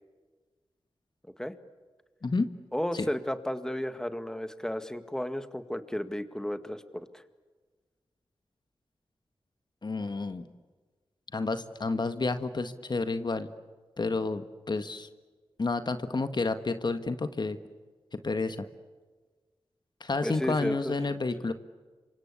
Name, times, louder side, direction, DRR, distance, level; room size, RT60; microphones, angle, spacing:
voice 1, 2.2-2.5 9.8-10.4 11.3-13.5 14.0-15.1 15.6-17.6 18.1-18.6 20.0-21.5, left 3 dB, 50° left, 9 dB, 1.5 m, -30 dB
voice 2, 2.7-7.2 20.2-21.0, left 1 dB, 5° left, 10 dB, 1.9 m, -33 dB
27.5 x 25.0 x 8.5 m, 1.4 s
cardioid pair, 50°, 10 cm